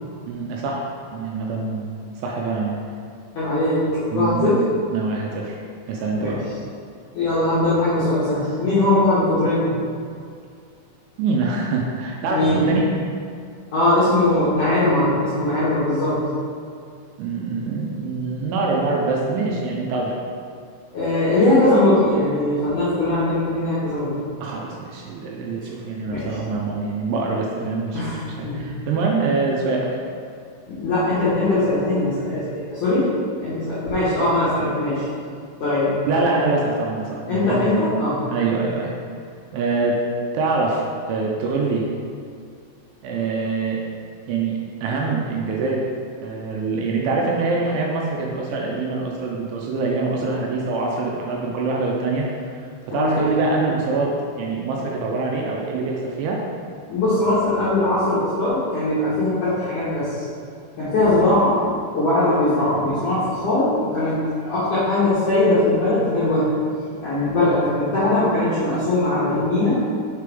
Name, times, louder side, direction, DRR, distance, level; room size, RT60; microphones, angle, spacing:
voice 1, 0.3-1.9 2.2-2.8 4.1-4.5 4.9-5.6 5.9-6.4 11.2-12.9 17.2-20.2 24.4-30.0 36.1-37.6 38.3-38.9 39.5-40.0 40.3-41.9 43.0-43.8 44.3-45.8 46.2-52.6 52.9-56.4, right 3 dB, 80° right, -2 dB, 2.8 m, -24 dB
voice 2, 3.3-4.6 6.2-6.3 7.1-9.7 12.3-12.7 13.7-16.2 20.9-24.2 25.6-25.7 26.1-26.4 27.9-28.2 28.4-28.7 30.7-33.0 33.4-35.0 35.6-36.5 37.3-38.2 52.9-53.4 56.9-60.2 60.8-61.7 61.9-66.6 67.0-69.9, left 1 dB, 70° left, -12 dB, 1.9 m, -20 dB
6.7 x 4.9 x 3.5 m, 2.3 s
omnidirectional pair, 5.7 m